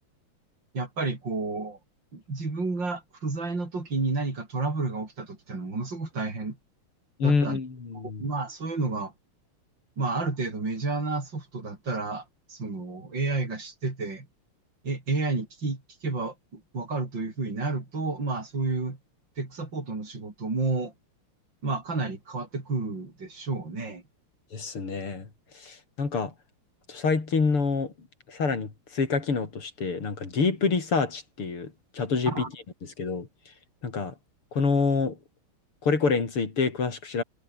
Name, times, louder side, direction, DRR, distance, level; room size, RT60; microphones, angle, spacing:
voice 1, 0.7-1.8 2.1-6.6 7.2-7.6 8.2-9.1 10.0-14.3 14.8-19.0 19.4-20.9 21.6-24.0 32.3-32.5, right 3 dB, 55° right, 6.1 m, -31 dB
voice 2, 7.2-8.2 24.5-25.3 25.5-26.3 26.9-27.9 28.3-32.5 32.8-33.3 33.8-34.1 34.5-35.2 35.8-37.2, left 4 dB, 85° left, 4.9 m, -27 dB
omnidirectional pair, 2.4 m